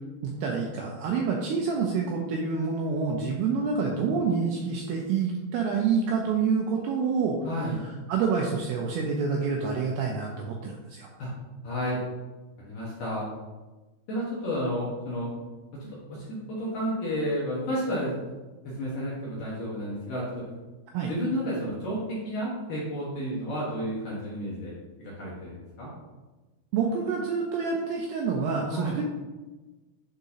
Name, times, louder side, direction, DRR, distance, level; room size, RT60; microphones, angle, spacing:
voice 1, 0.2-7.4 8.1-11.1 20.9-21.1 26.7-29.0, right 5 dB, 85° right, 0 dB, 2.3 m, -27 dB
voice 2, 7.4-7.8 11.2-11.3 11.6-12.0 12.6-13.2 14.1-15.3 15.7-18.2 18.6-20.4 21.1-24.7 25.0-25.9 28.7-29.0, equal, 65° left, -6 dB, 2.2 m, -31 dB
10.0 x 4.0 x 2.8 m, 1.2 s
omnidirectional pair, 5.3 m